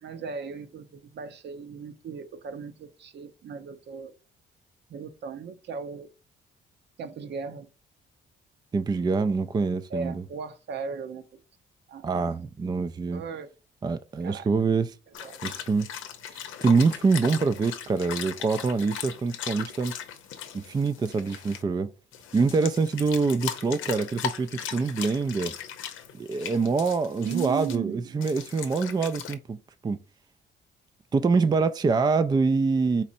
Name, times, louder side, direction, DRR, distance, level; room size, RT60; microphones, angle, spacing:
voice 1, 0.0-4.1 4.9-6.1 7.0-7.7 9.9-11.4 11.9-12.1 13.1-13.5 14.2-14.5 15.2-15.4 27.2-28.1, right 6 dB, 60° right, 0.7 m, -37 dB
voice 2, 8.7-10.2 12.0-13.2 13.8-14.9 15.4-15.9 16.3-19.9 20.5-21.9 22.3-25.5 26.2-29.6 29.8-30.0 31.1-33.0, right 4 dB, 20° right, 0.3 m, -25 dB
sound 1, 15.1-21.6 22.1-27.8 28.2-29.3, left 9 dB, 90° left, 0.7 m, -38 dB
4.3 x 4.0 x 2.6 m
cardioid pair, 90°, 20 cm